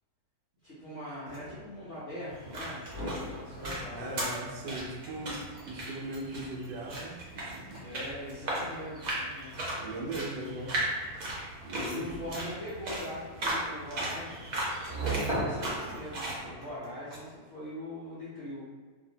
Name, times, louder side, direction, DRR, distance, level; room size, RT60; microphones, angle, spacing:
voice 1, 0.6-4.3 7.8-9.6 11.7-14.5 14.9-18.6, left 1 dB, 65° left, -10 dB, 0.6 m, -41 dB
sound 1, 1.0-17.6, right 2 dB, 35° right, 1.1 m, -42 dB
sound 2, 2.3-16.4, right 1 dB, 60° right, 1.0 m, -37 dB
voice 2, 4.0-7.8 9.8-10.8 11.6-12.2, right 1 dB, 80° right, -1 dB, 1.2 m, -39 dB
2.7 x 2.6 x 2.7 m, 1.4 s
omnidirectional pair, 2.0 m